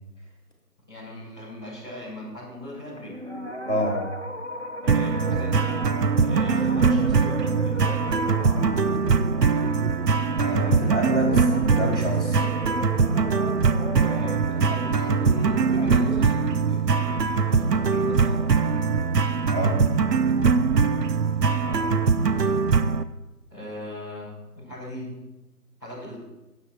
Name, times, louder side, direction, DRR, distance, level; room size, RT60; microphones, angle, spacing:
voice 1, 0.9-3.2 4.8-5.9 6.2-8.9 14.0-18.5 21.6-22.0 22.3-22.6 23.5-25.2 25.8-26.2, left 1 dB, 15° right, -14 dB, 2.7 m, -38 dB
sound 1, 2.7-16.2, left 1 dB, 45° right, 0.5 m, -37 dB
voice 2, 3.7-4.0 10.4-12.4 19.5-19.8, equal, 45° left, -1 dB, 1.6 m, -27 dB
sound 2, 4.9-23.0, right 5 dB, 85° right, 0.7 m, -22 dB
17.5 x 7.2 x 2.4 m, 0.98 s
figure-of-eight pair, 175°, 48 cm